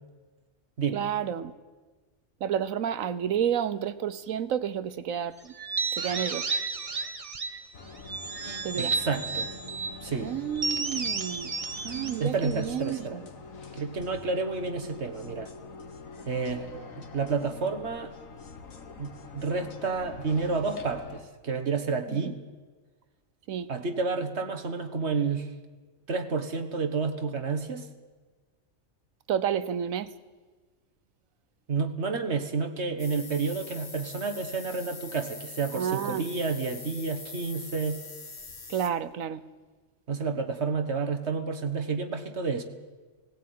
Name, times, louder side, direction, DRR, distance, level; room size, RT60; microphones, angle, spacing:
voice 1, 0.9-1.5 2.4-5.5 5.9-6.5 8.6-8.9 10.2-13.3 22.1-22.3 23.5-23.7 29.3-30.1 35.7-36.3 38.7-39.4, right 9 dB, 90° right, 1.3 m, -30 dB
sound 1, 5.6-7.7 8.1-10.0 10.6-13.1, right 4 dB, 30° right, 0.8 m, -32 dB
sound 2, 7.7-21.2, left 4 dB, 90° left, 1.9 m, -45 dB
voice 2, 8.7-9.5 10.0-10.3 12.2-13.2 13.7-15.5 16.3-16.7 17.0-18.1 19.0-22.4 23.7-25.5 26.1-27.9 31.7-38.0 40.1-42.6, right 4 dB, 55° right, 1.6 m, -30 dB
sound 3, 33.0-38.9, left 4 dB, 55° left, 2.1 m, -43 dB
18.0 x 16.0 x 9.4 m
omnidirectional pair, 1.4 m